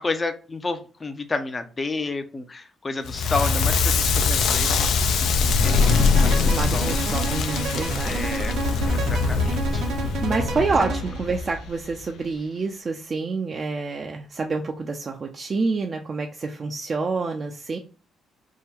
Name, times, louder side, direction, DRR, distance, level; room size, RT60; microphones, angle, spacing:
voice 1, 0.0-5.9 6.2-7.0 8.0-8.6 8.9-9.8, left 3 dB, 25° left, 7 dB, 0.6 m, -31 dB
Crackle, 3.0-12.0, left 4 dB, 70° left, 0.5 m, -22 dB
sound 1, 5.6-11.3, right 4 dB, 80° right, 0.9 m, -31 dB
voice 2, 6.2-8.2 10.2-17.8, right 4 dB, 30° right, 2 dB, 0.4 m, -28 dB
3.6 x 2.2 x 4.2 m, 0.35 s
cardioid pair, 125°, 0 cm